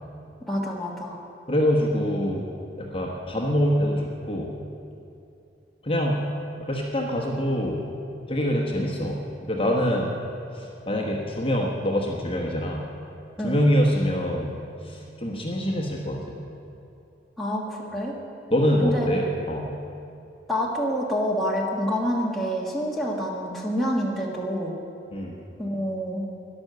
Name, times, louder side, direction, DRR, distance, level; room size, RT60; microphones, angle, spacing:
voice 1, 0.4-1.2 13.4-13.5 17.4-18.2 18.8-19.1 20.5-24.7 25.6-26.2, equal, ahead, -4 dB, 1.4 m, -27 dB
voice 2, 1.5-2.5 2.8-4.5 5.8-6.2 6.6-7.8 8.3-10.2 10.5-12.8 13.4-16.4 18.5-19.7 25.1-25.4, equal, 30° left, -1 dB, 1.2 m, -25 dB
12.5 x 10.5 x 6.8 m, 2.7 s
head